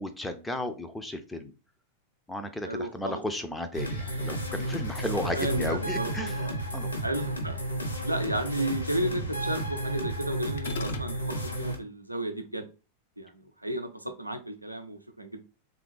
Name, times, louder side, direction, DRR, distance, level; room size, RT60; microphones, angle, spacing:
voice 1, 0.0-1.5 2.3-6.9, left 1 dB, 5° left, 7 dB, 0.5 m, -34 dB
voice 2, 2.6-3.2 5.2-6.6 7.0-7.6 8.0-12.7 13.2-15.4, right 1 dB, 85° right, 5 dB, 0.5 m, -33 dB
sound 1, 3.7-11.8, right 1 dB, 80° left, 1.0 m, -32 dB
sound 2, 10.6-11.1, left 5 dB, 60° left, 0.5 m, -36 dB
3.4 x 2.4 x 3.1 m, 0.31 s
figure-of-eight pair, 90°, 0 cm